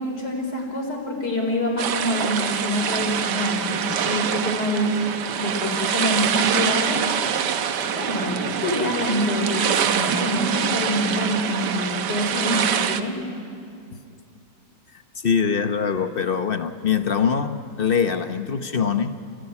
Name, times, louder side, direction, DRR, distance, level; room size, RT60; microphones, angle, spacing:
voice 1, 0.0-4.9 5.4-7.0 7.9-13.2, equal, 70° left, 1 dB, 5.4 m, -26 dB
sound 1, 1.8-13.0, right 8 dB, 70° right, 1.5 m, -25 dB
voice 2, 15.2-19.1, left 6 dB, 45° left, 9 dB, 0.8 m, -23 dB
29.5 x 17.5 x 9.8 m, 2.4 s
omnidirectional pair, 1.9 m